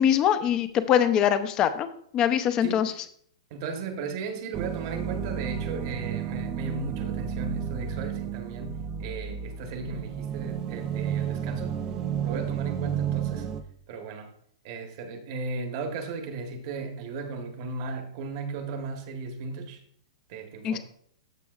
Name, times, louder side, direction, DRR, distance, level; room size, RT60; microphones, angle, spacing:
voice 1, 0.0-1.9 2.1-2.9 20.6-20.8, left 9 dB, 25° left, 0.6 m, -23 dB
voice 2, 3.5-11.8 12.2-13.5 13.9-14.3 14.6-19.8 20.3-20.8, right 4 dB, 40° right, 1.2 m, -36 dB
sound 1, 4.5-13.6, right 9 dB, 20° right, 0.5 m, -32 dB
13.5 x 5.9 x 2.4 m
hypercardioid pair, 160°, 3 cm